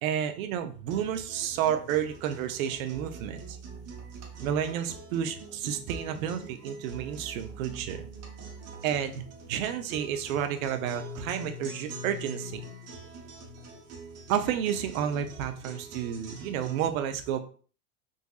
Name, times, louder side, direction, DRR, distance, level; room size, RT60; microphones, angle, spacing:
voice 1, 0.0-3.6 4.4-8.1 8.8-12.6 14.3-17.4, right 9 dB, 60° right, 8 dB, 0.7 m, -31 dB
sound 1, 0.9-16.9, right 2 dB, 30° right, 1.0 m, -44 dB
3.8 x 2.5 x 2.3 m, 0.40 s
hypercardioid pair, 95°, 47 cm